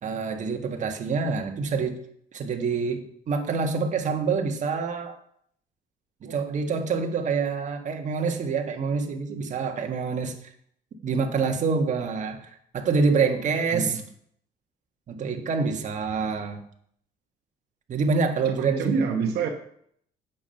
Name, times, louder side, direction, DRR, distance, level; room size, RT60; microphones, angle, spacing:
voice 1, 0.0-2.0 2.3-5.2 6.2-10.3 11.0-14.0 15.1-16.6 17.9-19.0, right 5 dB, 45° right, 4 dB, 1.7 m, -26 dB
voice 2, 18.6-19.5, right 6 dB, 75° right, 4 dB, 1.1 m, -27 dB
8.6 x 7.3 x 5.7 m, 0.65 s
cardioid pair, 110°, 17 cm